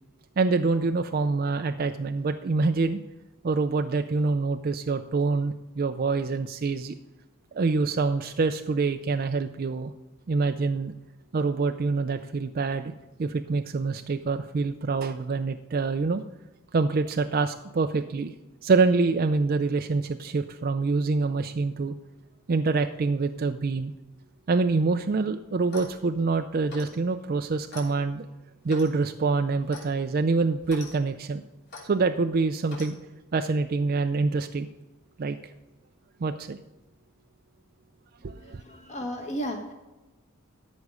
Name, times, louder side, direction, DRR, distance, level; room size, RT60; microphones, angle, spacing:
voice 1, 0.4-3.0 3.4-7.0 7.5-9.9 10.3-10.9 11.3-12.9 13.2-16.2 16.7-18.3 18.6-21.9 22.5-23.9 24.5-28.3 28.6-31.4 31.8-33.0 33.3-34.7 35.2-35.4 36.2-36.6 38.2-38.6, right 4 dB, 45° right, 7 dB, 0.4 m, -26 dB
Clock, 25.6-26.0 26.7-27.0 27.7-27.9 28.7-28.9 29.7-29.9 30.6-30.9 31.7-31.9 32.7-32.9, left 3 dB, 50° left, 3.0 m, -42 dB
voice 2, 38.4-39.7, equal, 30° left, 3 dB, 1.5 m, -34 dB
13.0 x 5.4 x 4.9 m, 1.1 s
head